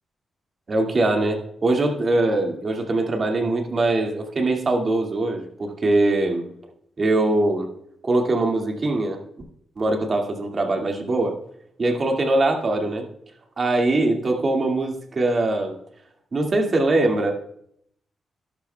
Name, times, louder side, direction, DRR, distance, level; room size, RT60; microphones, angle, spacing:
voice 1, 0.7-6.4 7.0-7.7 8.0-9.2 9.8-11.3 11.8-13.1 13.6-15.8 16.3-17.3, right 2 dB, 45° right, 2 dB, 2.1 m, -22 dB
12.5 x 12.0 x 2.3 m, 0.70 s
cardioid pair, 80°, 0 cm